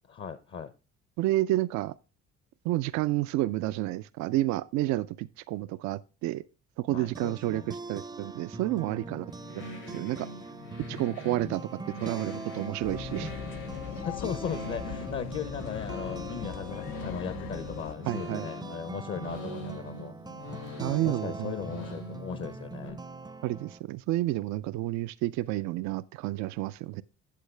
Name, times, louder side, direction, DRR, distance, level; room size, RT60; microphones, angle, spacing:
voice 1, 0.1-0.7 6.9-7.7 9.0-9.2 11.4-11.6 14.0-20.2 20.8-23.0, left 7 dB, 45° left, 0.8 m, -37 dB
voice 2, 1.2-1.9 2.6-6.4 6.8-10.3 10.9-11.6 12.0-13.3 18.1-18.5 20.8-21.5 23.4-27.0, right 16 dB, 75° right, 0.4 m, -30 dB
sound 1, 6.9-23.8, right 3 dB, 15° right, 0.5 m, -42 dB
sound 2, 9.3-22.9, left 1 dB, 85° left, 4.5 m, -44 dB
sound 3, 12.8-17.9, left 12 dB, 70° left, 0.5 m, -40 dB
8.5 x 7.7 x 3.3 m
supercardioid pair, 70°, 29 cm